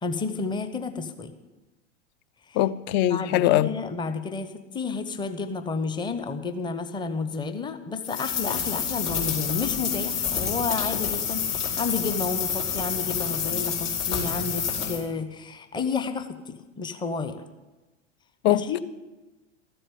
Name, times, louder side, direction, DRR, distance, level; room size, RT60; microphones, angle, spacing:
voice 1, 0.0-1.3 2.5-2.6 3.1-17.4 18.5-18.8, left 4 dB, 10° left, 0.9 m, -31 dB
voice 2, 2.6-3.7 18.4-18.8, left 13 dB, 30° left, 0.5 m, -22 dB
sound 1, 8.0-15.0, left 7 dB, 45° left, 4.4 m, -28 dB
13.5 x 7.9 x 9.3 m
figure-of-eight pair, 85°, 36 cm